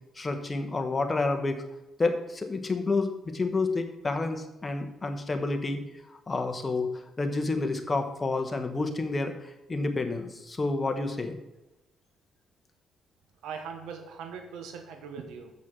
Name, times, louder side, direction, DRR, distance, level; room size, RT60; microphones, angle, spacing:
voice 1, 0.1-1.6 2.0-5.8 6.1-6.9 7.2-11.4, left 3 dB, 25° left, 6 dB, 1.3 m, -29 dB
voice 2, 13.4-15.5, right 6 dB, 90° right, 5 dB, 1.1 m, -40 dB
7.5 x 5.7 x 6.3 m, 0.96 s
cardioid pair, 90°, 0 cm